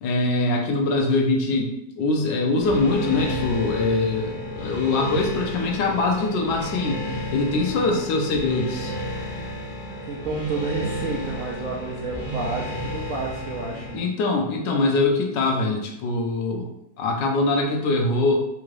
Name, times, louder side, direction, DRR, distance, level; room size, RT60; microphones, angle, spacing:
voice 1, 0.0-7.0 7.3-8.9 13.9-16.7 17.0-18.3, left 3 dB, 80° left, 1 dB, 1.3 m, -23 dB
sound 1, 2.6-13.9, equal, 50° left, 1.0 m, -32 dB
voice 2, 10.1-14.1, right 3 dB, 75° right, -4 dB, 0.7 m, -30 dB
3.7 x 2.5 x 3.1 m, 0.82 s
omnidirectional pair, 2.0 m